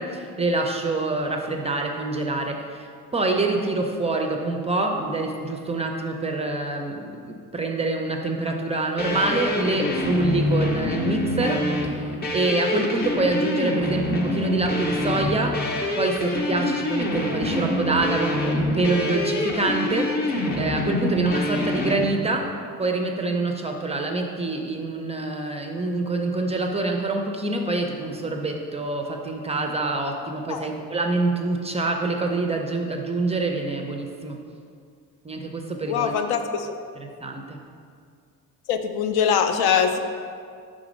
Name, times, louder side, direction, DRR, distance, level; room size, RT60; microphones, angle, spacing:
voice 1, 0.0-15.6 16.0-20.1 20.6-22.5 22.8-34.4 35.2-36.1 37.0-37.6, right 2 dB, 20° right, 3 dB, 0.4 m, -26 dB
sound 1, 9.0-22.0, left 1 dB, 25° left, 0.6 m, -26 dB
voice 2, 35.9-36.7 38.7-40.0, left 7 dB, 80° left, 7 dB, 0.5 m, -22 dB
5.0 x 3.7 x 5.0 m, 2.2 s
cardioid pair, 120°, 37 cm